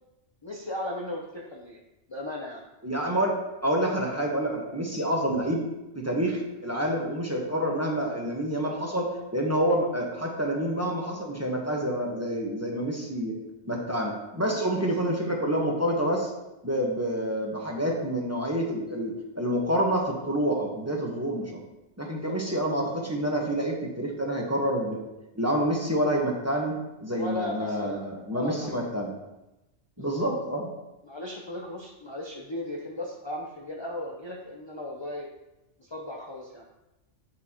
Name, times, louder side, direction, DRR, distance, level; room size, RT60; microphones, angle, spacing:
voice 1, 0.4-1.8 2.1-2.6 14.8-15.1 22.1-22.4 27.1-28.0 28.3-28.7 30.0-30.2 31.0-35.3 35.8-36.6, left 1 dB, 25° left, -2 dB, 0.8 m, -36 dB
voice 2, 2.8-5.6 5.9-9.1 9.3-13.3 13.6-16.3 16.6-21.6 22.0-25.0 25.3-29.1 30.0-30.7, right 1 dB, 15° right, -1 dB, 1.3 m, -28 dB
10.5 x 6.2 x 3.0 m, 0.97 s
omnidirectional pair, 1.3 m